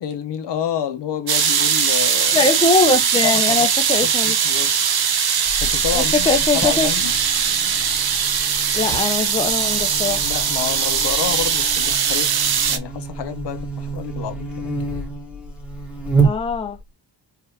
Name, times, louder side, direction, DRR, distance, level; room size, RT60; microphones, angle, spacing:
voice 1, 0.0-2.4 3.5-3.7 4.0-4.7 5.6-7.1 10.2-12.4 12.7-14.8, left 9 dB, 70° left, 0.8 m, -29 dB
sound 1, 1.3-12.8, right 7 dB, 55° right, 0.8 m, -20 dB
voice 2, 2.3-4.4 5.9-6.9 8.7-10.2 16.2-16.8, left 3 dB, 15° left, 0.4 m, -21 dB
Buzz, 5.5-16.9, right 4 dB, 5° right, 1.1 m, -29 dB
4.8 x 2.4 x 2.8 m
wide cardioid pair, 155°, 43 cm